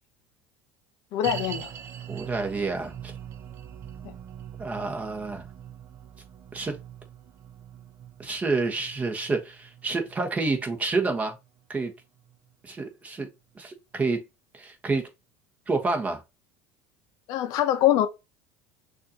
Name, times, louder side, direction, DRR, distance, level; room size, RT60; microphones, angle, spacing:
voice 1, 1.1-1.7 4.0-4.1 17.3-18.1, left 12 dB, 60° left, 0.7 m, -23 dB
sound 1, 1.2-12.5 12.8-12.9 13.5-13.6, right 9 dB, 45° right, 0.7 m, -43 dB
voice 2, 2.1-3.1 4.6-5.4 6.5-6.8 8.2-11.3 11.7-11.9 12.6-13.3 13.5-14.2 14.5-15.1 15.7-16.2, right 3 dB, 20° right, 1.2 m, -28 dB
6.3 x 2.6 x 2.8 m
supercardioid pair, 115°, 7 cm